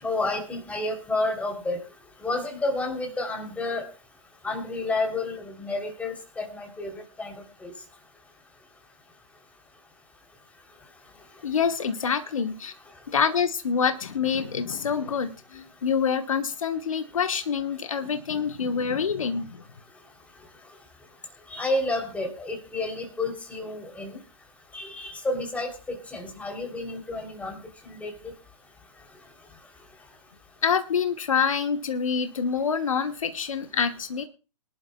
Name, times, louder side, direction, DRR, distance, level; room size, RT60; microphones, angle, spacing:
voice 1, 0.0-1.8 2.2-3.8 4.4-7.7 21.5-24.2 24.7-28.3, left 2 dB, 10° left, 2 dB, 3.2 m, -30 dB
voice 2, 11.4-12.7 13.1-19.6 30.6-34.2, left 6 dB, 70° left, 8 dB, 1.2 m, -26 dB
23.5 x 11.5 x 2.3 m, 0.33 s
figure-of-eight pair, 125°, 18 cm